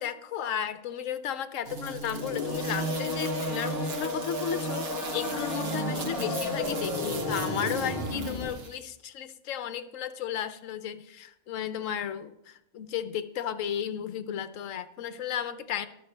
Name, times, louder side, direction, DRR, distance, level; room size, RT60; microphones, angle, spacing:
voice 1, 0.0-15.9, left 9 dB, 70° left, 11 dB, 1.0 m, -34 dB
sound 1, 1.7-8.8, right 3 dB, 50° right, 1.1 m, -36 dB
sound 2, 2.0-8.5, left 3 dB, 30° left, 1.2 m, -33 dB
19.0 x 6.6 x 3.3 m, 0.83 s
omnidirectional pair, 1.5 m